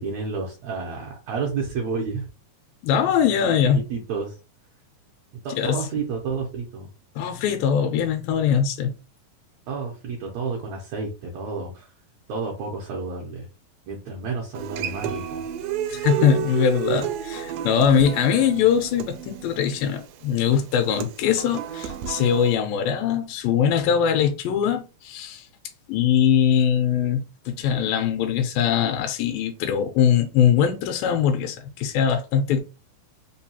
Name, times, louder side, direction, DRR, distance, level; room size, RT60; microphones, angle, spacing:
voice 1, 0.0-2.3 3.4-4.4 5.4-6.9 9.7-11.9 12.3-13.5 13.9-15.4, right 4 dB, 75° right, 1.7 m, -30 dB
voice 2, 2.8-3.8 5.6-5.8 7.2-8.9 15.9-25.5 25.9-32.6, left 8 dB, 85° left, 2.3 m, -22 dB
Human voice / Acoustic guitar, 14.6-22.6, right 10 dB, 90° right, 2.3 m, -31 dB
5.4 x 2.3 x 2.8 m
omnidirectional pair, 4.0 m